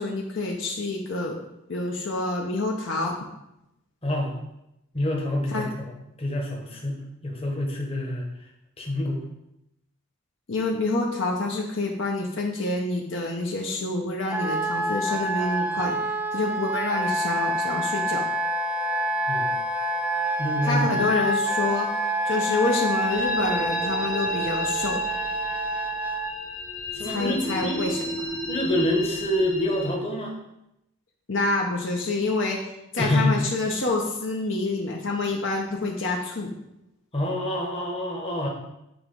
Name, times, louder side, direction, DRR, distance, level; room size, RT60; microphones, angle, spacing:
voice 1, 0.0-1.4 1.7-3.2 5.5-5.7 10.5-18.2 20.6-21.9 22.2-25.0 27.0-28.0 31.3-32.6 32.9-36.5, left 2 dB, 60° left, 0 dB, 0.7 m, -27 dB
voice 2, 4.0-4.4 4.9-5.9 6.2-8.2 8.8-9.2 19.3-19.5 20.4-21.0 26.9-27.8 28.5-30.3 33.0-33.4 37.1-38.5, left 1 dB, 25° left, 0 dB, 1.1 m, -27 dB
Wind instrument woodwind instrument, 14.3-26.3, right 1 dB, 5° right, 0.4 m, -27 dB
sound 1, 23.1-29.9, left 2 dB, 75° left, 1.8 m, -34 dB
7.9 x 3.0 x 5.2 m, 0.87 s
head